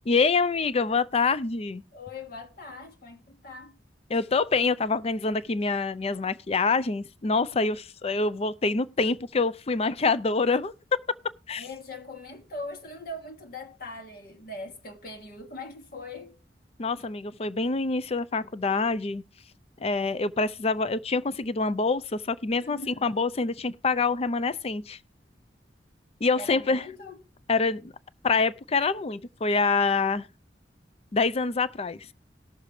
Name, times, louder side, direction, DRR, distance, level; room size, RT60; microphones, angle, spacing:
voice 1, 0.1-1.8 4.1-10.7 11.5-11.6 16.8-19.2 19.8-25.0 26.2-26.8 27.5-27.9 28.2-30.3 31.1-32.1, left 4 dB, 35° left, 0.5 m, -26 dB
voice 2, 1.9-3.8 11.6-16.4 22.6-23.2 26.4-27.2, left 2 dB, 55° left, 1.6 m, -41 dB
18.5 x 6.6 x 3.2 m
head